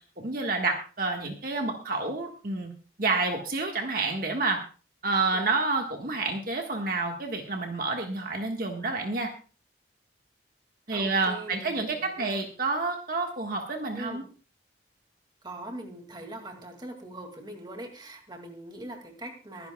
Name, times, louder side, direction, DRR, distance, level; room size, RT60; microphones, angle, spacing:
voice 1, 0.2-2.7 3.0-4.6 5.0-9.3 10.9-14.2, right 3 dB, 50° right, 2 dB, 1.6 m, -29 dB
voice 2, 10.9-12.3 13.9-14.2 15.4-19.7, right 1 dB, 25° right, 4 dB, 2.2 m, -42 dB
23.0 x 11.0 x 2.3 m, 0.37 s
head